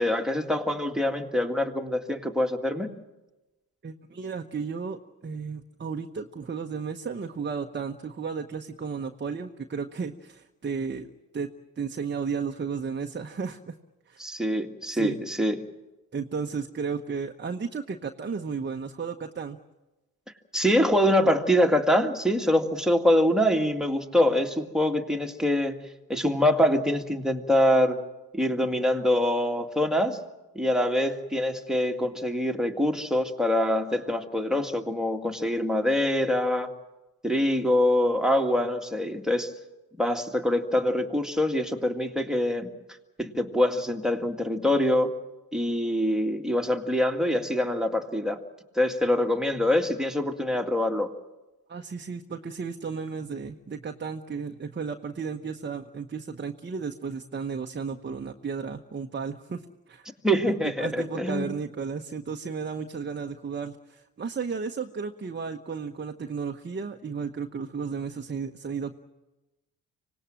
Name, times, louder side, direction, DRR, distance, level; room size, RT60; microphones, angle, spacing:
voice 1, 0.0-2.9 14.2-15.6 20.5-25.8 26.1-28.0 28.3-30.2 30.6-36.7 37.2-39.5 40.0-42.7 43.2-45.1 45.5-48.4 48.8-51.1 60.2-61.5, left 1 dB, ahead, 6 dB, 2.0 m, -24 dB
voice 2, 3.8-11.1 11.3-13.7 14.1-14.2 14.9-15.2 16.1-19.6 51.7-60.1 60.8-68.9, right 5 dB, 25° right, 4 dB, 1.1 m, -34 dB
25.5 x 18.0 x 7.6 m, 1.1 s
hypercardioid pair, 50°, 42 cm